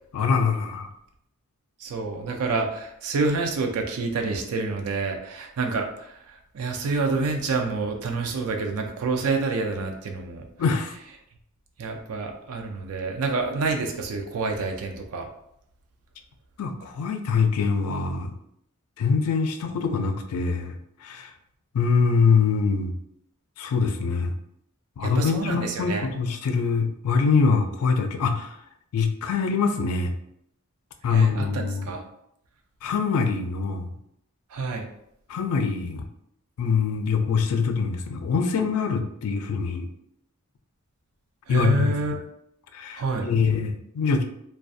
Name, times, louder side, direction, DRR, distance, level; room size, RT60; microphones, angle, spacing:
voice 1, 0.1-0.9 10.6-10.9 16.6-18.3 19.0-20.7 21.0-21.3 21.7-22.9 23.6-24.3 25.0-28.6 28.9-30.1 31.0-31.9 32.8-33.9 35.3-36.0 36.6-39.9 41.5-42.1 42.7-44.2, left 5 dB, 75° left, 6 dB, 0.3 m, -24 dB
voice 2, 1.8-10.5 11.8-15.3 25.0-26.1 31.1-32.0 34.5-34.9 41.5-42.2 43.0-43.3, right 3 dB, 85° right, 4 dB, 0.4 m, -28 dB
2.3 x 2.2 x 2.6 m, 0.74 s
head